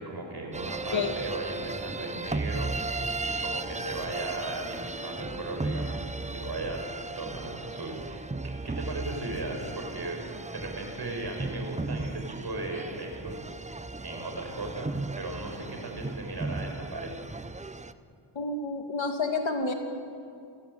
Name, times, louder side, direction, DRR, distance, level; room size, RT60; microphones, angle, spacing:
voice 1, 0.0-2.7 3.2-6.8 7.2-8.3 8.6-13.4 14.0-17.2, right 2 dB, 50° right, 2 dB, 5.1 m, -37 dB
sound 1, 0.5-17.9, right 3 dB, 15° right, 0.6 m, -36 dB
voice 2, 18.3-19.7, left 3 dB, 70° left, 5 dB, 2.3 m, -29 dB
26.5 x 16.0 x 7.7 m, 2.4 s
wide cardioid pair, 95°, 48 cm